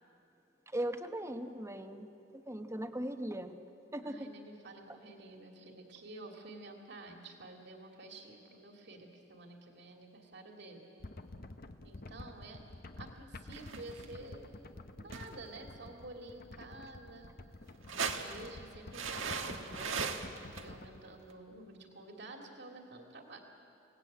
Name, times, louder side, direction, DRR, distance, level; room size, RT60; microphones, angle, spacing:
voice 1, 0.7-3.5 3.9-4.3, right 1 dB, 15° right, 7 dB, 1.1 m, -39 dB
voice 2, 4.0-10.8 11.8-12.6 13.0-14.6 15.0-17.3 17.9-23.4, right 2 dB, 60° right, 3 dB, 2.5 m, -50 dB
sound 1, 11.0-21.1, left 2 dB, 50° left, 1.0 m, -50 dB
sound 2, 13.5-14.1 15.1-15.5 17.7-18.5 18.9-20.6 21.3-21.4, right 5 dB, 85° right, 1.5 m, -38 dB
29.0 x 18.0 x 8.8 m, 2.8 s
head